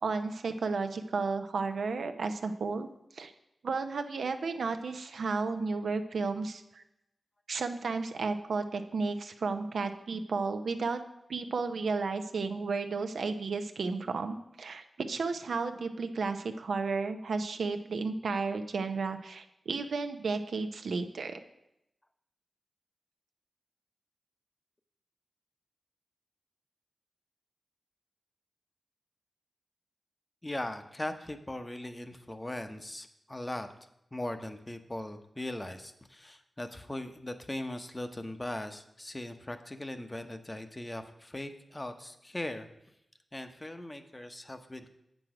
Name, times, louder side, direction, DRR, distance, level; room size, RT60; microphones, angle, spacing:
voice 1, 0.0-2.9 3.1-3.3 3.6-6.8 7.5-11.0 11.3-21.4, right 4 dB, 80° right, 7 dB, 0.6 m, -33 dB
voice 2, 30.4-33.7 34.1-42.7 43.3-44.9, left 1 dB, 25° left, 8 dB, 0.8 m, -39 dB
7.7 x 6.1 x 4.9 m, 0.83 s
cardioid pair, 40°, 0 cm